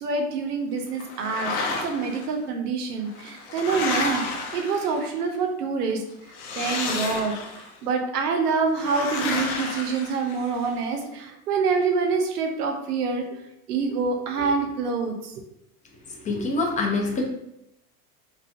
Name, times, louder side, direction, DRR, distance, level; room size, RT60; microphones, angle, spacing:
voice 1, 0.0-1.5 1.8-6.0 6.6-13.4 13.7-15.3, right 4 dB, 85° right, 4 dB, 0.6 m, -26 dB
sound 1, 1.0-2.3 3.1-5.2 6.3-7.7 8.8-10.7, left 3 dB, 70° left, 0.6 m, -31 dB
voice 2, 16.0-17.2, left 3 dB, 20° left, 0 dB, 0.4 m, -26 dB
2.4 x 2.2 x 2.4 m, 0.83 s
hypercardioid pair, 85°, 45 cm